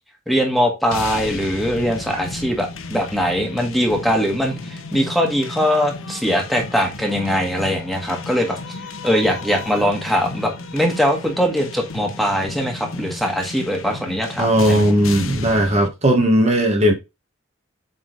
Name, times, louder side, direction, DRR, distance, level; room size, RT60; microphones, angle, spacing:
voice 1, 0.3-8.7 9.0-14.8, equal, ahead, 1.6 m, -21 dB
sound 1, 0.9-15.9, left 3 dB, 80° left, 0.9 m, -33 dB
voice 2, 14.4-16.9, equal, 35° right, 1.4 m, -17 dB
7.9 x 3.7 x 3.9 m
head